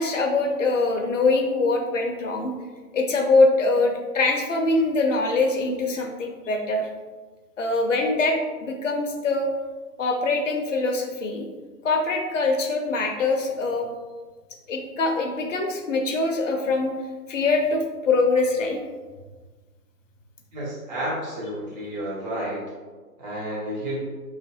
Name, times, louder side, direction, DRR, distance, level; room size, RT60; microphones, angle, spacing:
voice 1, 0.0-2.5 2.9-6.9 7.6-9.5 10.0-11.5 11.8-13.9 14.7-16.9 17.3-18.8, left 3 dB, 55° left, 3 dB, 0.5 m, -23 dB
voice 2, 20.5-22.6 23.2-24.0, right 1 dB, 25° right, -7 dB, 0.9 m, -31 dB
2.9 x 2.4 x 2.8 m, 1.4 s
figure-of-eight pair, 140°, 47 cm